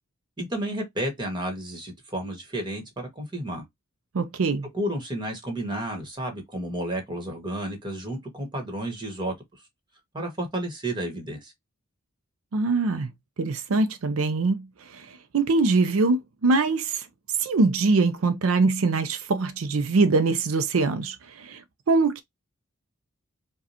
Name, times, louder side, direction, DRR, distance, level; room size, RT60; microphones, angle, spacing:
voice 1, 0.4-3.6 4.7-9.3 10.1-11.5, right 1 dB, 20° right, 1.5 m, -31 dB
voice 2, 4.1-4.7 12.5-13.1 13.4-17.1 17.4-21.6 21.9-22.2, right 3 dB, 80° right, 0.5 m, -23 dB
4.8 x 2.3 x 2.7 m
head